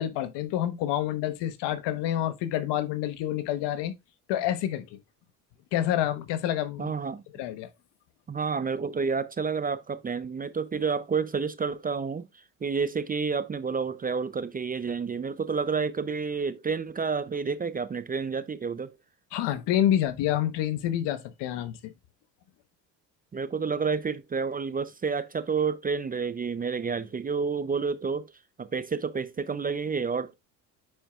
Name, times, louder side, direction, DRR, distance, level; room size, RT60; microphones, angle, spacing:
voice 1, 0.0-3.9 4.3-5.0 5.7-6.9 7.3-7.7 19.3-21.9, left 12 dB, 70° left, 1.1 m, -28 dB
voice 2, 6.8-7.2 8.3-12.3 12.6-18.9 23.3-28.2 28.6-30.3, right 5 dB, 20° right, 0.5 m, -29 dB
9.1 x 4.4 x 2.4 m
supercardioid pair, 85°, 43 cm